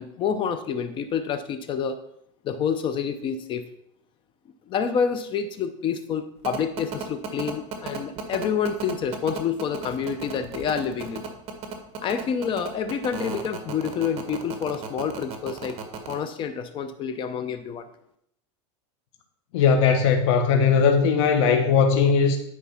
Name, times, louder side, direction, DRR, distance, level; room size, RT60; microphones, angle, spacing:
voice 1, 0.0-2.0 2.4-3.6 4.7-11.2 12.0-15.8 16.1-17.9, left 7 dB, 30° left, 10 dB, 0.6 m, -28 dB
sound 1, 6.4-16.1, right 7 dB, 40° right, 1.7 m, -34 dB
voice 2, 19.5-22.4, left 6 dB, 70° left, 5 dB, 1.3 m, -19 dB
11.0 x 4.7 x 5.7 m, 0.73 s
supercardioid pair, 145°, 16 cm